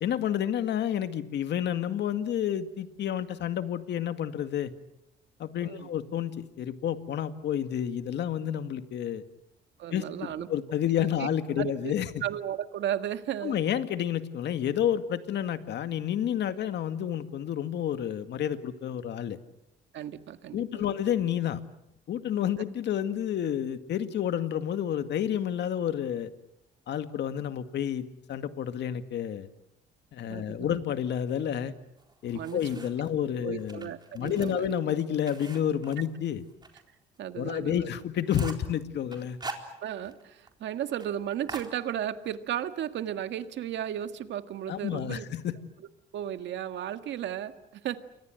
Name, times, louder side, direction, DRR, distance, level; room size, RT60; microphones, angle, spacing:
voice 1, 0.0-4.7 5.4-9.2 9.9-10.0 10.5-12.1 13.4-19.4 20.5-21.6 22.1-26.3 26.9-29.5 30.1-31.7 32.2-36.4 37.4-39.4 44.7-45.5, left 9 dB, 65° left, 9 dB, 2.1 m, -30 dB
voice 2, 9.8-10.5 11.0-11.3 11.6-11.9 12.2-13.6 19.9-20.8 30.3-30.8 32.3-32.6 33.4-34.7 37.2-37.9 39.8-45.3 46.1-48.0, right 10 dB, 70° right, 9 dB, 1.8 m, -34 dB
sound 1, 32.0-33.1 33.6-36.8 37.2-37.3 37.6-37.7 38.0-38.7 39.1-40.2 40.5-40.6 40.9-41.1 41.5-42.3, right 3 dB, 20° right, 4.0 m, -43 dB
29.0 x 24.5 x 7.9 m, 0.83 s
cardioid pair, 120°, 20 cm